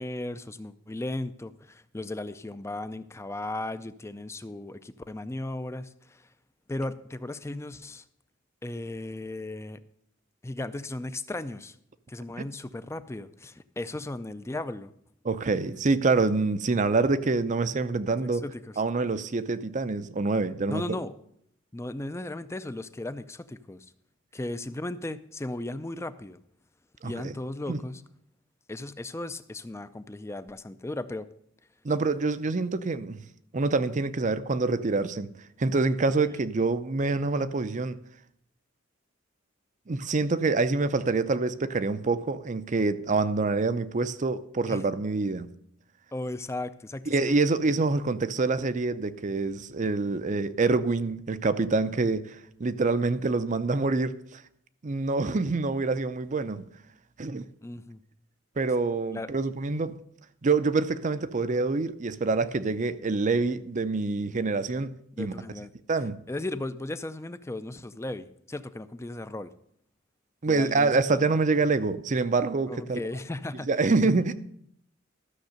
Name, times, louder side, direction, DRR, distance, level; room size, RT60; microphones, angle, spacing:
voice 1, 0.0-6.3 6.7-8.0 8.6-9.8 10.4-11.8 12.1-14.9 18.4-18.7 20.7-21.1 21.7-23.9 24.3-26.4 27.0-28.0 28.7-31.3 36.3-36.5 44.7-44.8 46.1-47.4 57.6-58.0 59.1-59.3 65.2-65.7 66.3-69.5 70.5-70.9 72.7-73.7 74.0-74.1, left 2 dB, 15° left, 0.4 m, -36 dB
voice 2, 15.2-18.4 18.8-20.8 27.0-27.3 27.7-27.8 31.8-33.2 33.5-35.3 35.6-38.0 39.9-45.5 47.1-54.4 54.8-56.7 57.2-57.5 58.6-60.0 60.4-64.9 65.2-65.3 65.9-66.2 70.4-73.0 73.7-74.3, right 3 dB, 35° right, 0.5 m, -26 dB
13.0 x 6.5 x 6.5 m
head